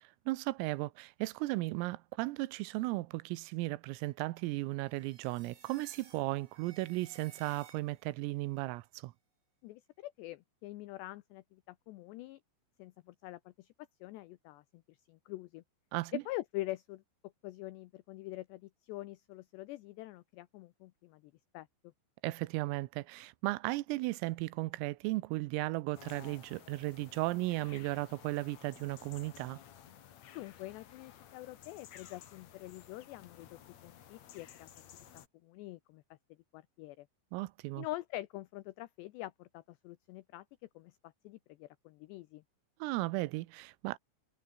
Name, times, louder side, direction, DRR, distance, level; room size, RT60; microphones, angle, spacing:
voice 1, 0.3-9.1 15.9-16.2 22.2-29.6 37.3-37.9 42.8-44.0, right 20 dB, 90° right, 3.5 m, -35 dB
sound 1, 4.8-8.2, right 6 dB, 55° right, 7.1 m, -58 dB
voice 2, 9.6-12.4 12.8-13.7 14.0-15.6 16.1-17.0 17.4-21.2 21.5-21.7 30.4-35.0 35.4-36.0 36.5-37.1 37.8-40.5 40.8-42.4, left 17 dB, 90° left, 2.4 m, -45 dB
sound 2, 25.9-35.3, left 10 dB, 70° left, 1.6 m, -55 dB
omnidirectional pair, 5.9 m